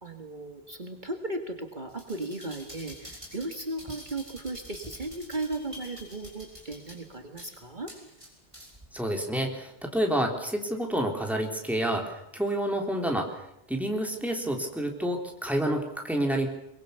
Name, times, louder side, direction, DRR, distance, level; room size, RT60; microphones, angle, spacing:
voice 1, 0.0-7.9, right 2 dB, 45° right, 5 dB, 1.9 m, -36 dB
sound 1, 1.9-8.9 9.3-9.4, equal, 30° right, 6.2 m, -47 dB
voice 2, 8.9-13.3 13.7-16.5, right 1 dB, ahead, 2 dB, 3.6 m, -29 dB
23.0 x 22.5 x 6.9 m, 0.82 s
omnidirectional pair, 1.1 m